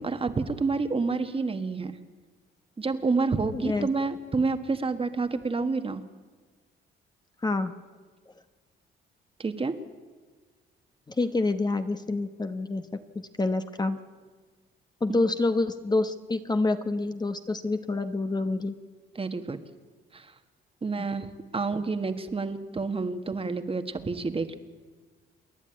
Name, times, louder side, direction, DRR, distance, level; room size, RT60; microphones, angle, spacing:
voice 1, 0.0-1.9 2.8-6.0 9.4-9.7 19.1-19.6 20.1-20.2 20.8-21.3 21.5-24.6, right 4 dB, 30° right, 9 dB, 1.5 m, -28 dB
voice 2, 3.5-3.9 7.4-7.7 11.1-14.0 15.0-18.7, left 2 dB, 20° left, 8 dB, 1.0 m, -27 dB
28.0 x 10.5 x 9.1 m, 1.4 s
cardioid pair, 90°, 20 cm